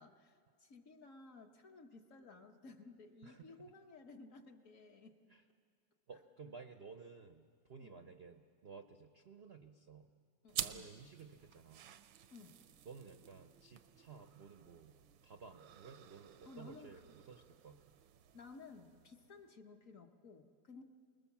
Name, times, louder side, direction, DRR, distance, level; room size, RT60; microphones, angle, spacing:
voice 1, 0.0-5.2 7.8-8.1 10.4-10.9 12.3-12.6 16.4-17.1 18.3-20.8, left 3 dB, 50° left, 4 dB, 1.3 m, -56 dB
voice 2, 6.1-10.1 10.5-11.9 12.8-17.8, right 5 dB, 55° right, 7 dB, 0.7 m, -55 dB
sound 1, 10.5-19.5, right 10 dB, 85° right, 1.5 m, -50 dB
27.0 x 20.0 x 7.2 m, 2.1 s
omnidirectional pair, 2.1 m